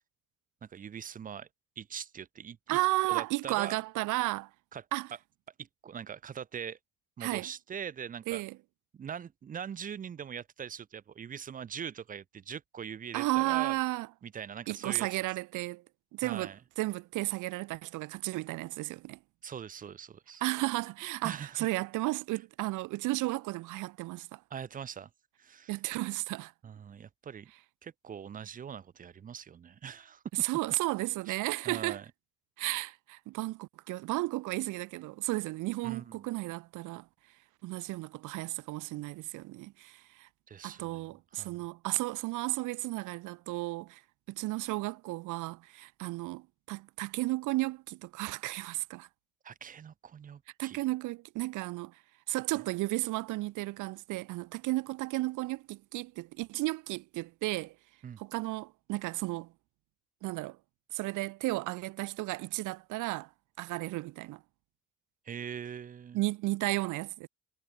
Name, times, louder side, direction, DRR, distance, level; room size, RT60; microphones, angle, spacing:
voice 1, 0.6-1.5 1.8-2.8 3.1-3.8 4.7-4.8 5.6-6.8 7.2-8.4 8.9-13.8 14.2-15.1 16.2-16.6 19.4-20.4 21.2-21.7 24.5-25.1 25.4-25.8 26.6-27.5 27.8-30.2 31.3-31.4 31.6-32.1 32.7-32.8 35.8-36.3 40.5-41.0 41.3-41.6 49.4-50.8 58.0-58.2 65.2-66.2, right 8 dB, 30° right, 0.4 m, -42 dB
voice 2, 2.7-4.5 4.9-5.1 7.2-7.5 8.3-8.6 13.1-14.1 14.7-15.8 16.1-19.2 20.4-24.4 25.7-26.5 30.4-32.0 32.6-37.1 37.6-40.3 40.6-44.0 44.3-49.1 50.6-52.0 52.3-57.8 58.2-59.5 60.2-60.6 60.9-63.3 63.6-64.4 66.1-67.3, right 19 dB, 90° right, 0.6 m, -33 dB
cardioid pair, 90°, 30 cm